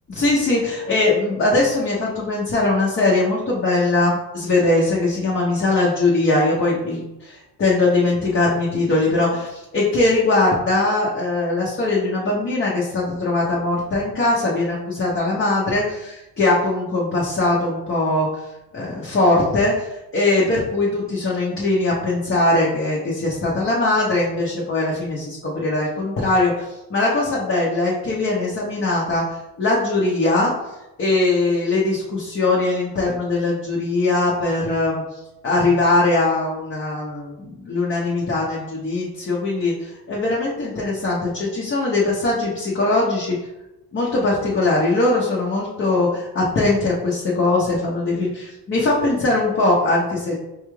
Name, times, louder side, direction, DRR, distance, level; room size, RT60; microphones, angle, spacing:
voice 1, 0.1-18.3 18.7-30.5 31.0-35.0 35.4-39.7 40.1-43.3 43.9-50.3, left 2 dB, 30° left, -5 dB, 0.8 m, -21 dB
4.6 x 2.3 x 3.1 m, 0.94 s
cardioid pair, 115°, 41 cm